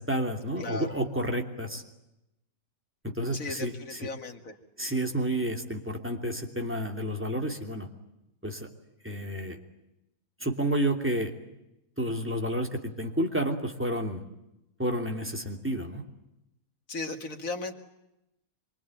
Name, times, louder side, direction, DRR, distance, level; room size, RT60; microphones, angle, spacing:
voice 1, 0.0-1.8 3.0-4.1 4.8-7.9 8.4-8.7 9.0-9.6 10.4-11.3 12.0-14.2 14.8-16.0, right 1 dB, 10° right, 4 dB, 2.9 m, -30 dB
voice 2, 0.6-1.0 3.3-4.6 16.9-17.7, left 3 dB, 65° left, 3 dB, 2.8 m, -36 dB
26.0 x 24.0 x 9.2 m, 0.90 s
omnidirectional pair, 1.5 m